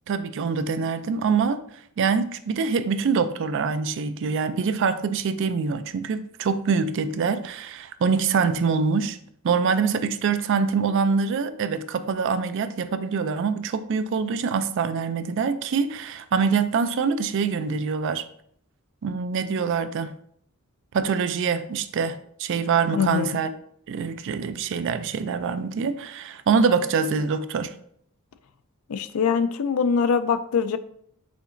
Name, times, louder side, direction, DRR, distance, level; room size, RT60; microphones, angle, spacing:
voice 1, 0.1-1.6 2.0-9.2 9.4-18.2 19.0-20.2 20.9-23.5 23.9-27.7, right 5 dB, 55° right, 0.3 m, -24 dB
voice 2, 22.9-23.3 28.9-30.8, left 6 dB, 75° left, 0.4 m, -23 dB
5.1 x 3.8 x 2.5 m
head